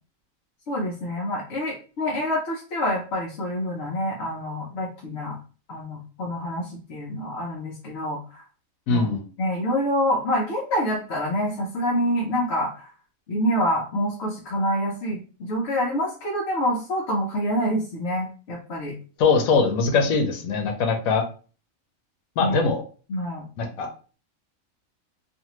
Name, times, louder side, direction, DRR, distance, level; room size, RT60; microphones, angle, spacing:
voice 1, 0.7-5.4 5.7-8.4 8.9-9.1 9.4-12.9 13.3-18.9 20.0-20.1 22.4-22.6 23.1-23.5, equal, 60° left, -4 dB, 0.9 m, -26 dB
voice 2, 8.9-9.2 19.2-21.2 22.4-22.8 23.6-23.9, left 4 dB, 85° left, 5 dB, 1.1 m, -21 dB
2.5 x 2.5 x 2.9 m, 0.37 s
omnidirectional pair, 1.4 m